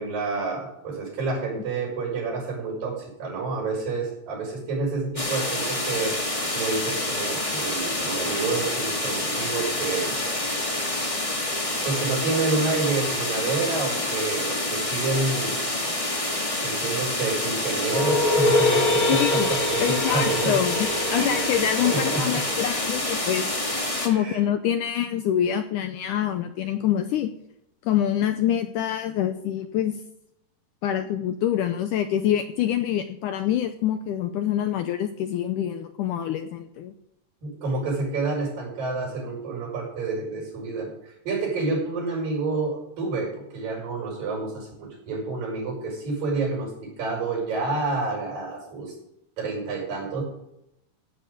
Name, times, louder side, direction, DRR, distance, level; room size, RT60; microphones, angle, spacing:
voice 1, 0.0-6.2 6.5-10.2 11.8-15.6 16.5-20.6 21.1-22.4 24.1-24.4 37.4-40.9 41.3-48.9 49.4-50.2, right 3 dB, 65° right, -1 dB, 7.1 m, -29 dB
sound 1, 5.2-24.1, left 1 dB, 20° left, 0.9 m, -28 dB
sound 2, 17.9-23.2, left 2 dB, 40° left, 2.5 m, -25 dB
voice 2, 19.1-19.5 19.8-23.6 24.0-27.3 27.8-29.9 30.8-37.0, left 10 dB, 80° left, 8 dB, 1.9 m, -25 dB
15.5 x 9.0 x 5.1 m, 0.83 s
omnidirectional pair, 4.3 m